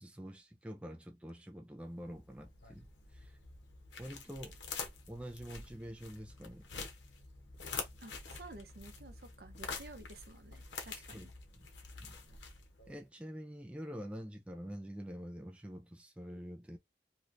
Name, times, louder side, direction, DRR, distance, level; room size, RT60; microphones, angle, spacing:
voice 1, 0.0-3.4 4.0-4.6 5.1-6.7 11.0-11.3 12.0-12.2 12.9-16.8, equal, 5° right, 0.3 m, -46 dB
sound 1, 1.9-12.9, left 4 dB, 90° left, 1.0 m, -47 dB
voice 2, 8.0-11.3, right 2 dB, 60° right, 0.7 m, -53 dB
3.1 x 2.8 x 2.5 m
head